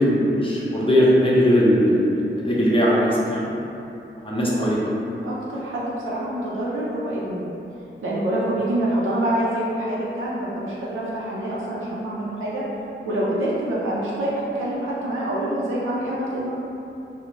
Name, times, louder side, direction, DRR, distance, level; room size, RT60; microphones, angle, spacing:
voice 1, 0.0-3.5 4.1-4.8, equal, 25° left, -6 dB, 0.7 m, -19 dB
voice 2, 5.2-7.5 8.0-12.6 13.0-16.5, right 1 dB, 80° right, -7 dB, 0.5 m, -26 dB
2.5 x 2.0 x 3.0 m, 2.8 s
cardioid pair, 50°, 20 cm